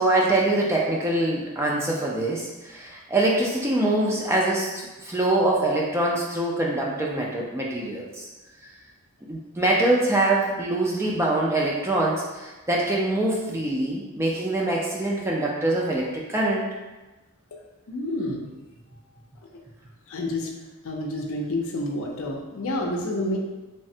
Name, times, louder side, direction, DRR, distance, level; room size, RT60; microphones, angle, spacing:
voice 1, 0.0-8.3 9.3-16.7, right 2 dB, 10° right, -3 dB, 0.3 m, -24 dB
voice 2, 17.9-18.5 20.1-20.5 20.8-23.4, left 1 dB, 60° left, 0 dB, 0.5 m, -29 dB
3.2 x 2.0 x 2.7 m, 1.2 s
head